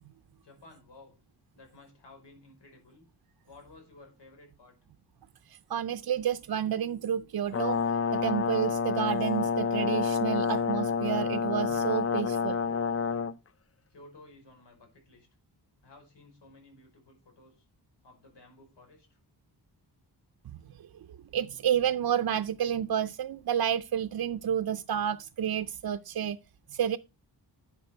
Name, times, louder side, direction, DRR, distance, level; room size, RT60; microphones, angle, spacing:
voice 1, 0.4-1.2 1.5-3.1 3.5-4.8 13.9-15.3 15.8-17.7 18.0-19.2, left 2 dB, 90° left, 5.3 m, -55 dB
voice 2, 5.5-7.8 8.1-12.6 20.8-20.9 21.3-26.4 26.7-27.0, right 9 dB, 60° right, 0.5 m, -30 dB
Brass instrument, 7.5-13.3, left 5 dB, 35° left, 0.6 m, -28 dB
11.0 x 7.3 x 4.4 m
wide cardioid pair, 145°, 41 cm